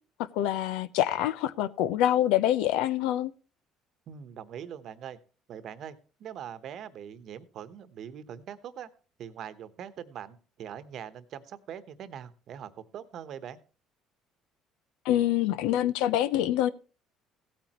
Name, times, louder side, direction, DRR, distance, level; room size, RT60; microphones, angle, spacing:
voice 1, 0.3-3.3 15.0-16.7, left 12 dB, 85° left, 0.7 m, -25 dB
voice 2, 4.1-5.2 5.5-8.9 9.2-13.6, right 9 dB, 55° right, 1.1 m, -42 dB
16.5 x 8.9 x 3.0 m
cardioid pair, 115°, 0 cm